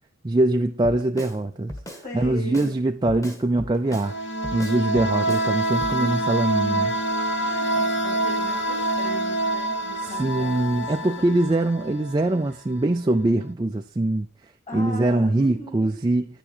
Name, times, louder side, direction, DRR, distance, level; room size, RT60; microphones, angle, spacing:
voice 1, 0.2-1.7 2.1-4.2 4.5-6.9 10.0-14.3 14.7-16.3, right 2 dB, 20° right, 0.3 m, -23 dB
Drum kit, 0.8-1.4 1.7-2.7 3.1-4.1 4.4-5.5 5.8-6.0, equal, 15° left, 1.4 m, -37 dB
voice 2, 2.0-2.8 6.6-7.1 7.4-11.1 12.5-12.6 14.7-16.0, left 1 dB, 35° left, 3.4 m, -39 dB
sound 1, 3.9-12.5, right 1 dB, 55° left, 1.1 m, -26 dB
9.8 x 7.1 x 4.4 m
head